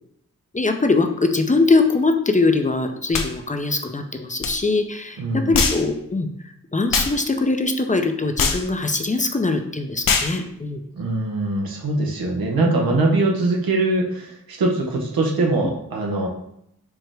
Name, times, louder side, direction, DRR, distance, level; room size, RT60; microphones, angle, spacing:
voice 1, 0.5-6.3 6.7-10.8 12.6-13.0, left 3 dB, 20° left, 5 dB, 0.5 m, -22 dB
sound 1, 3.1-3.3 4.4-4.5 5.5-5.8 6.9-7.1 8.4-8.6 10.0-10.3, left 5 dB, 70° left, 0.6 m, -21 dB
voice 2, 5.2-5.6 10.9-16.3, right 2 dB, 90° right, 0 dB, 0.9 m, -22 dB
4.7 x 2.1 x 4.6 m, 0.75 s
cardioid pair, 40°, 35 cm